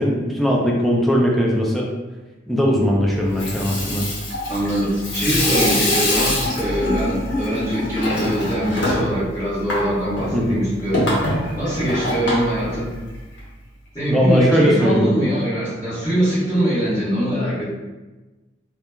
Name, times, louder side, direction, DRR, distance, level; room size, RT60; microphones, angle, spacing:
voice 1, 0.0-1.9 2.5-4.1 10.3-10.6 14.1-15.1, equal, ahead, -3 dB, 0.4 m, -19 dB
Water tap faucet / Sink (filling or washing), 3.2-13.4, left 1 dB, 70° left, 0.8 m, -24 dB
voice 2, 4.5-11.0 11.6-12.9 13.9-17.6, right 1 dB, 20° left, -17 dB, 1.2 m, -22 dB
3.1 x 2.1 x 2.3 m, 1.2 s
head